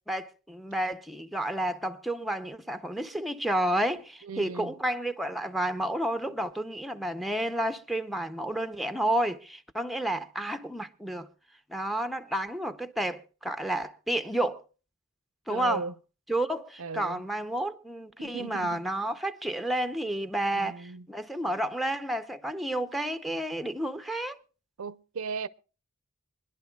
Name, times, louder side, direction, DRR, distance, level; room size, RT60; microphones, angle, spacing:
voice 1, 0.1-11.3 11.7-14.6 15.5-15.8 16.3-24.4, right 1 dB, ahead, 0.6 m, -31 dB
voice 2, 4.3-4.7 15.5-15.9 16.8-17.2 18.2-18.8 20.5-21.1 24.8-25.5, right 5 dB, 70° right, 0.6 m, -36 dB
25.5 x 11.0 x 2.3 m
head